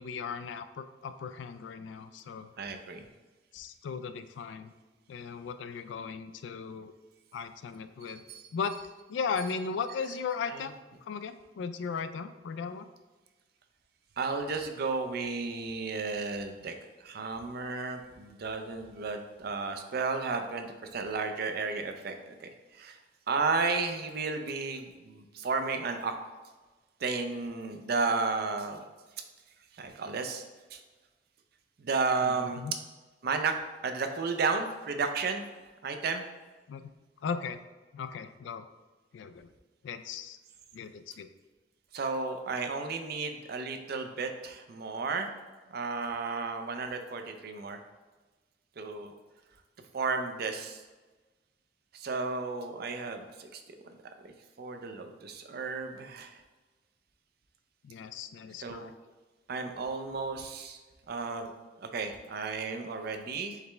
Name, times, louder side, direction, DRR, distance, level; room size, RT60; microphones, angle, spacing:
voice 1, 0.0-2.5 3.5-4.7 5.1-6.9 7.3-8.2 8.5-8.8 9.1-10.7 11.0-12.9 32.2-32.7 36.7-36.9 37.2-37.6 37.9-38.7 39.1-39.5 39.8-40.4 40.7-41.3 57.8-58.9, left 5 dB, 85° left, 11 dB, 0.3 m, -37 dB
voice 2, 2.6-3.1 8.3-8.5 10.5-10.6 14.2-16.7 17.0-20.7 20.9-23.0 23.3-26.1 27.0-28.8 29.7-30.5 30.7-30.8 31.8-32.6 33.2-33.6 33.8-35.4 35.8-36.2 41.9-45.4 45.7-47.8 48.8-49.1 49.9-50.8 51.9-53.6 54.2-54.3 54.6-56.4 58.6-58.9 59.5-60.8 61.1-61.5 61.8-63.6, right 4 dB, 60° right, 6 dB, 0.5 m, -33 dB
4.9 x 3.3 x 3.2 m, 1.3 s
head